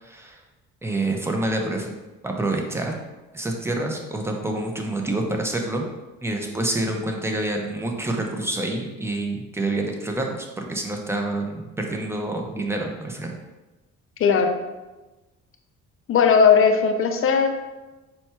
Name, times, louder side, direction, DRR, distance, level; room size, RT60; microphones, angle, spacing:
voice 1, 0.0-0.4 0.8-1.9 2.2-3.0 3.3-5.9 6.2-13.3, right 2 dB, 10° right, 2 dB, 0.6 m, -27 dB
voice 2, 14.2-14.6 16.1-17.8, left 6 dB, 45° left, 5 dB, 0.6 m, -18 dB
4.2 x 2.3 x 4.4 m, 1.1 s
cardioid pair, 90°, 30 cm